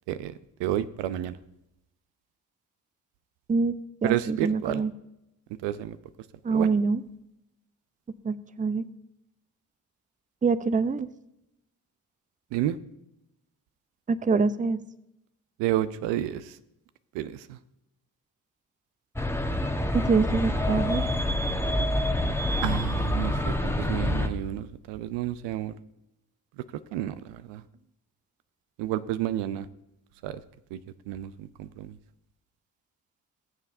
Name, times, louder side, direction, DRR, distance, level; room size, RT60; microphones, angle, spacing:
voice 1, 0.6-1.3 4.0-4.8 5.6-6.0 6.5-6.7 12.5-12.8 15.6-16.6 17.1-17.6 22.6-25.7 26.9-27.6 28.8-29.7 30.2-30.4 30.7-30.8 31.1-31.9, right 12 dB, 75° right, 14 dB, 0.6 m, -30 dB
voice 2, 4.0-4.9 6.4-7.0 8.2-8.8 10.4-11.1 14.1-14.8 19.9-21.1, right 4 dB, 20° right, 15 dB, 0.6 m, -25 dB
sound 1, 19.2-24.3, left 1 dB, 5° left, 1.2 m, -27 dB
20.5 x 7.4 x 2.6 m, 0.85 s
hypercardioid pair, 45°, 43 cm